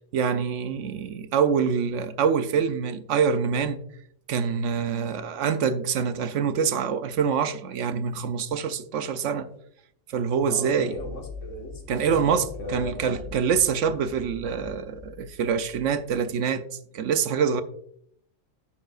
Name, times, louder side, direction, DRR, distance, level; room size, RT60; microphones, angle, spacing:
voice 1, 0.1-3.8 4.3-9.5 10.1-10.9 11.9-16.6 16.9-17.6, right 6 dB, 75° right, 0.9 m, -25 dB
voice 2, 9.2-9.6 10.5-13.2, left 2 dB, 70° left, 1.9 m, -37 dB
sound 1, 11.0-16.1, left 2 dB, 40° right, 1.3 m, -43 dB
9.6 x 6.9 x 2.4 m
omnidirectional pair, 1.3 m